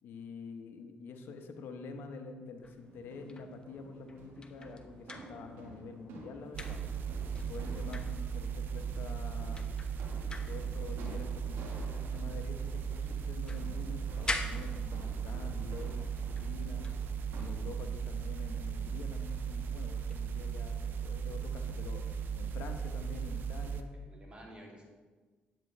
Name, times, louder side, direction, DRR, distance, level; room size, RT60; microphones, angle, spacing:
voice 1, 0.0-6.8 7.5-9.9 10.5-17.0 17.3-22.0 22.3-24.0, left 4 dB, 75° left, 6 dB, 1.0 m, -47 dB
sound 1, 2.6-6.0 6.3-8.7 9.2-9.3 9.5-12.8 13.1-15.4 16.1-16.5 16.8-17.0 20.1-20.3, left 3 dB, 25° left, 0.9 m, -44 dB
sound 2, 2.8-17.5, right 2 dB, 85° right, 1.5 m, -51 dB
sound 3, 6.5-23.8, right 7 dB, 65° right, 0.7 m, -37 dB
voice 2, 23.7-24.8, right 1 dB, 30° right, -2 dB, 2.7 m, -52 dB
10.5 x 8.9 x 3.3 m, 1.3 s
cardioid pair, 85°, 4 cm